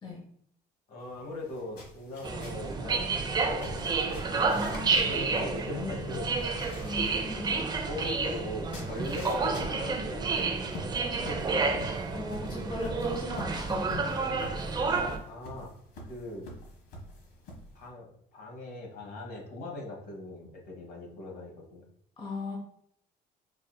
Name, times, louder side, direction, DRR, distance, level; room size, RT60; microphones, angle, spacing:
voice 1, 0.9-4.2 4.9-6.4 7.3-10.5 10.9-11.8 15.2-15.7 16.0-16.5 17.7-21.9, left 2 dB, 60° left, -1 dB, 1.3 m, -40 dB
sound 1, 1.0-17.9, left 1 dB, 75° left, 1.1 m, -47 dB
sound 2, 2.2-15.2, right 4 dB, 25° right, 0.5 m, -30 dB
voice 2, 4.3-5.6 6.8-7.5 11.5-11.7 12.1-14.4 22.2-22.6, left 2 dB, 30° left, -1 dB, 1.0 m, -38 dB
5.2 x 2.7 x 2.2 m, 0.68 s
cardioid pair, 110°, 17 cm